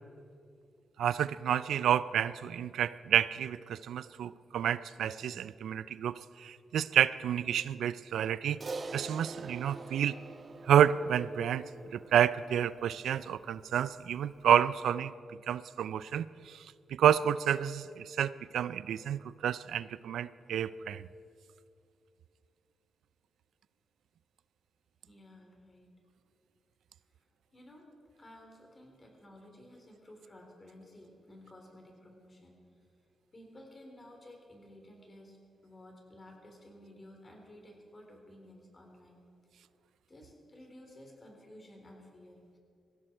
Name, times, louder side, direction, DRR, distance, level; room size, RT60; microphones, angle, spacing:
voice 1, 1.0-8.6 8.9-10.2 10.7-15.1 15.5-21.0, right 9 dB, 90° right, 17 dB, 0.3 m, -29 dB
Crash cymbal, 8.6-13.2, right 3 dB, 45° right, 1.0 m, -45 dB
voice 2, 25.1-25.9 27.2-27.3 27.5-27.9 28.2-32.8 33.3-35.4 35.6-39.2 40.1-42.6, left 1 dB, 30° left, 1 dB, 3.8 m, -54 dB
18.5 x 15.5 x 4.5 m, 2.5 s
cardioid pair, 80°, 0 cm